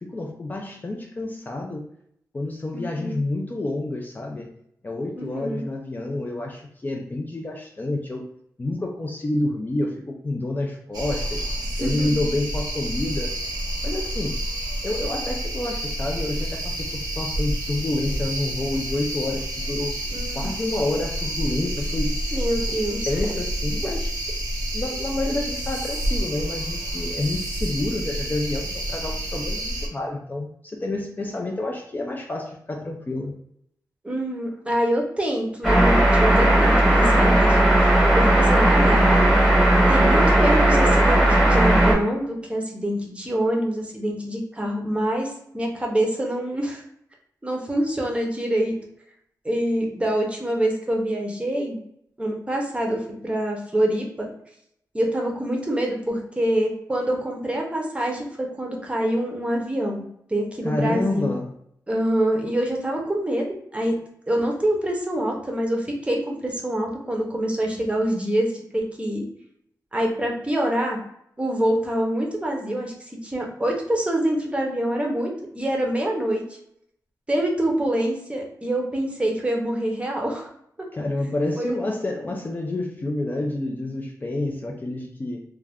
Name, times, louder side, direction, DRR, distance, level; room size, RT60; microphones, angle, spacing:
voice 1, 0.0-1.9 2.3-4.5 4.8-8.2 8.6-11.5 11.8-13.3 13.8-14.4 14.8-19.9 20.3-22.2 23.1-24.1 24.7-33.4 60.6-61.5 80.9-85.4, left 2 dB, 25° left, 0 dB, 0.3 m, -28 dB
voice 2, 2.7-3.2 5.2-5.7 11.8-12.1 20.1-20.5 22.3-23.1 34.0-39.3 39.9-46.8 47.4-48.7 49.4-51.8 52.2-54.3 54.9-60.0 60.3-61.3 61.9-64.0 64.3-69.2 69.9-71.0 71.4-72.9 73.2-76.4 77.3-80.5 80.8-80.9 81.6-81.8, right 1 dB, 15° right, 0 dB, 0.6 m, -25 dB
sound 1, 10.9-29.9, right 1 dB, 90° right, 0.8 m, -29 dB
sound 2, 35.6-41.9, right 1 dB, ahead, 1.0 m, -16 dB
2.4 x 2.2 x 3.3 m, 0.72 s
wide cardioid pair, 125°, 7 cm